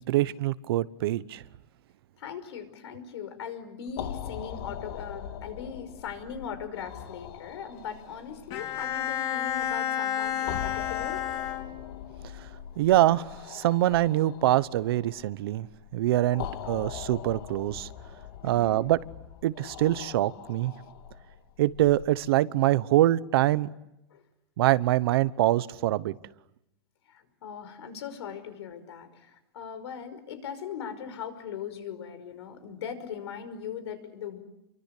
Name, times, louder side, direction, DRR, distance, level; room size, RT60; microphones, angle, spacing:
voice 1, 0.0-1.4 12.8-15.7 15.9-17.9 18.4-19.0 19.4-20.7 21.6-23.7 24.6-26.1, right 15 dB, 60° right, 1.0 m, -24 dB
voice 2, 2.2-11.3 16.3-16.8 18.4-18.9 24.1-24.2 27.1-34.4, left 7 dB, 80° left, 5.5 m, -40 dB
sound 1, 3.9-22.1, left 9 dB, 60° left, 2.1 m, -42 dB
Bowed string instrument, 8.5-12.2, left 9 dB, 35° left, 3.6 m, -31 dB
29.0 x 24.0 x 8.4 m
supercardioid pair, 170°, 14 cm